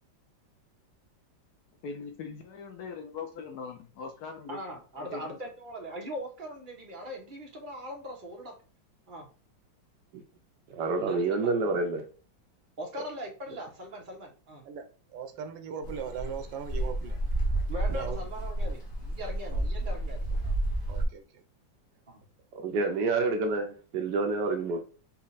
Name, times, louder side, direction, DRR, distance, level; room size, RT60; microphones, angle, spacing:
voice 1, 1.8-4.6 5.0-5.4, left 5 dB, 70° left, 4 dB, 1.0 m, -41 dB
voice 2, 4.5-8.5 9.1-9.3 11.0-11.5 12.8-14.6 17.7-20.5 22.1-22.2, equal, 35° right, 1 dB, 0.9 m, -41 dB
voice 3, 10.8-12.0 22.6-24.8, right 3 dB, 70° right, 5 dB, 1.2 m, -28 dB
voice 4, 14.6-17.2 17.9-18.3 19.5-19.6 20.9-21.4, right 7 dB, 85° right, 7 dB, 1.4 m, -39 dB
sound 1, 15.8-21.1, right 1 dB, 35° left, 1.0 m, -31 dB
4.2 x 2.4 x 4.0 m, 0.36 s
omnidirectional pair, 2.0 m